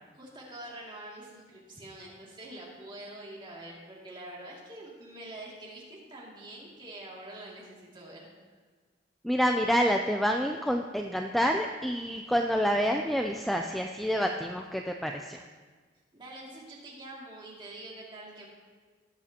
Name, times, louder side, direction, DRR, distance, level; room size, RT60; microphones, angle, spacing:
voice 1, 0.1-8.3 16.1-18.5, right 1 dB, 25° right, -4 dB, 2.4 m, -45 dB
voice 2, 9.2-15.4, equal, ahead, 3 dB, 0.3 m, -28 dB
18.5 x 7.4 x 2.9 m, 1.5 s
head